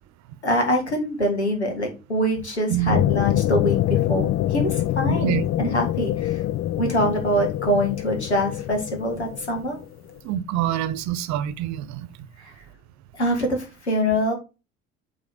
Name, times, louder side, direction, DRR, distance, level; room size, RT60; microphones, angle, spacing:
voice 1, 0.4-6.4 6.8-9.8 13.1-14.3, equal, 90° left, 1.8 m, -24 dB
voice 2, 2.7-3.0 5.1-5.4 10.2-12.1, right 11 dB, 55° right, 0.9 m, -25 dB
sound 1, 2.9-9.9 10.2-10.3, left 14 dB, 45° left, 0.4 m, -25 dB
8.2 x 3.8 x 5.5 m
figure-of-eight pair, 50°, 32 cm